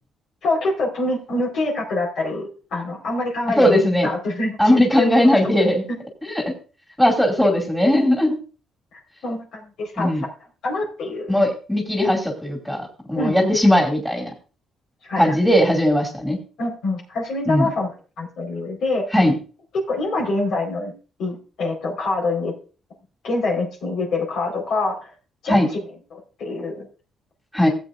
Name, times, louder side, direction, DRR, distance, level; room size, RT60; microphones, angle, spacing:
voice 1, 0.4-5.3 8.9-10.3 10.6-11.4 13.1-13.5 15.1-15.3 16.6-19.0 19.9-20.9 21.2-22.5 23.2-25.1 25.4-26.9, left 2 dB, 70° left, 0 dB, 4.5 m, -25 dB
voice 2, 3.6-4.1 4.6-5.8 6.2-6.5 7.0-8.4 10.0-10.2 11.3-14.3 15.2-16.4 17.5-17.7 19.1-19.3 25.5-25.7 27.5-27.7, left 1 dB, 5° left, 0 dB, 2.6 m, -18 dB
17.0 x 8.0 x 2.6 m, 0.35 s
cardioid pair, 90°, 0 cm